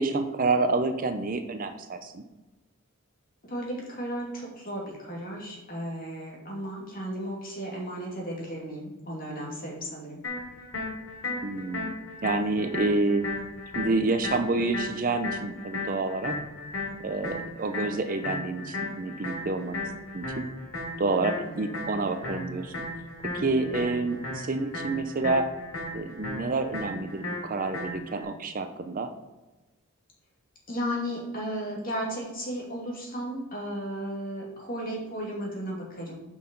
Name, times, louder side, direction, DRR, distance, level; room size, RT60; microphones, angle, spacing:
voice 1, 0.0-2.2 11.4-11.9 12.2-13.3 13.7-16.3 17.0-19.8 20.1-20.4 21.0-22.7 23.3-25.5 25.9-29.1, right 3 dB, 40° right, 8 dB, 0.5 m, -28 dB
voice 2, 3.4-10.2 21.1-21.7 23.4-23.8 30.7-36.2, equal, 40° left, -3 dB, 2.5 m, -35 dB
sound 1, 10.2-28.2, left 3 dB, 75° left, 3.0 m, -36 dB
6.4 x 5.7 x 5.3 m, 1.1 s
head